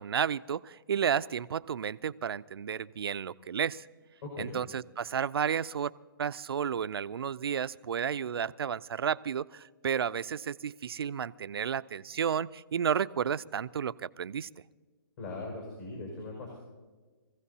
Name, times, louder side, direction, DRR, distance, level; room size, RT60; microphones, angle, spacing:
voice 1, 0.0-3.9 4.4-5.9 6.2-14.5, right 7 dB, 70° right, 15 dB, 0.4 m, -32 dB
voice 2, 4.2-4.6 15.2-16.6, left 2 dB, 45° left, -1 dB, 5.4 m, -40 dB
23.5 x 15.5 x 2.8 m, 1.4 s
hypercardioid pair, 150°, 13 cm